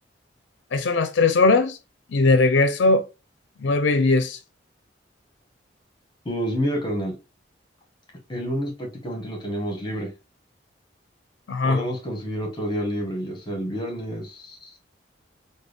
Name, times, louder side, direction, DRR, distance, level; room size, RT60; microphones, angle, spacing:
voice 1, 0.7-1.8 2.1-3.0 3.6-4.4 11.5-11.8, left 3 dB, 75° left, 0.4 m, -19 dB
voice 2, 6.2-7.2 8.3-10.1 11.6-14.8, equal, 25° left, 1.1 m, -29 dB
3.5 x 2.2 x 3.2 m
head